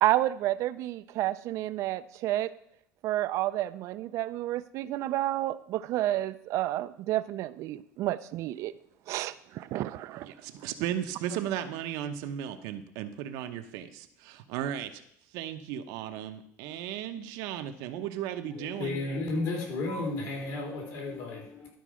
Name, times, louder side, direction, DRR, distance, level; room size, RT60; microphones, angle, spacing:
voice 1, 0.0-2.5 3.0-8.7 9.1-10.3 10.5-10.6, right 14 dB, 55° right, 14 dB, 0.4 m, -30 dB
voice 2, 10.2-15.0 15.3-19.0, right 10 dB, 80° right, 8 dB, 0.9 m, -35 dB
voice 3, 18.6-21.7, left 2 dB, 65° left, 0 dB, 3.2 m, -33 dB
12.0 x 4.6 x 6.2 m, 0.71 s
cardioid pair, 160°, 6 cm